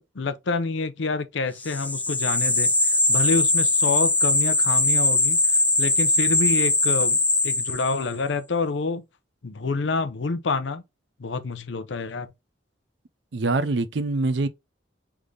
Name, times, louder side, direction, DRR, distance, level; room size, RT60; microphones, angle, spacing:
voice 1, 0.0-5.4 5.8-9.0 9.4-10.8 11.2-12.3, left 4 dB, 75° left, 0.6 m, -27 dB
sound 1, 1.6-8.1, left 2 dB, 10° left, 0.4 m, -21 dB
voice 2, 13.3-14.5, right 3 dB, 70° right, 0.5 m, -24 dB
3.6 x 3.2 x 3.8 m
head